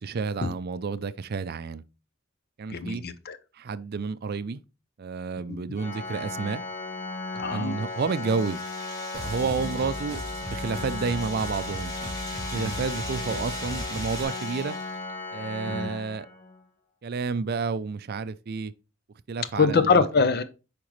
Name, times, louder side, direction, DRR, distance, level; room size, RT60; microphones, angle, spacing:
voice 1, 0.0-1.8 2.6-3.0 3.5-4.6 5.0-6.6 7.5-8.6 9.1-11.9 12.5-14.8 15.3-16.3 17.0-18.7 19.3-20.1, right 4 dB, 50° right, 0.4 m, -30 dB
voice 2, 2.7-3.4 5.5-5.6 7.4-7.7 12.5-12.9 15.7-15.9 19.6-20.4, left 4 dB, 50° left, 0.7 m, -24 dB
Organ, 5.8-16.6, left 3 dB, 35° left, 1.1 m, -36 dB
sound 1, 7.4-15.1, left 1 dB, 20° left, 2.0 m, -42 dB
sound 2, 9.1-14.2, right 1 dB, 30° right, 2.4 m, -38 dB
8.6 x 5.1 x 3.1 m
head